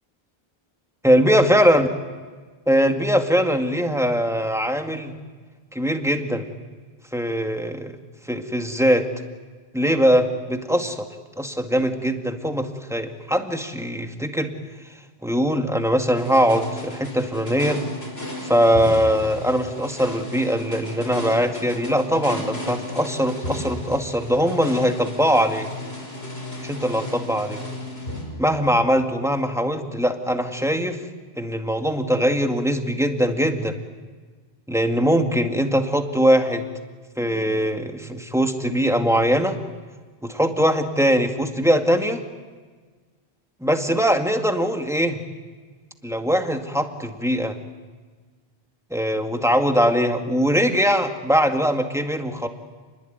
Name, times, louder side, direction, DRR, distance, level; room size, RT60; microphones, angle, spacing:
voice 1, 1.0-1.9 2.7-5.1 5.7-6.4 7.1-7.9 8.3-9.1 9.7-11.1 11.4-14.5 15.2-17.8 18.4-25.7 26.6-27.6 28.4-31.0 31.4-33.8 34.7-36.7 37.2-39.6 40.2-42.2 43.6-45.2 46.0-47.5 48.9-52.5, equal, 5° right, 5 dB, 2.1 m, -21 dB
sound 1, 16.2-28.9, left 1 dB, 80° left, 5.7 m, -34 dB
29.5 x 21.0 x 9.5 m, 1.4 s
omnidirectional pair, 1.1 m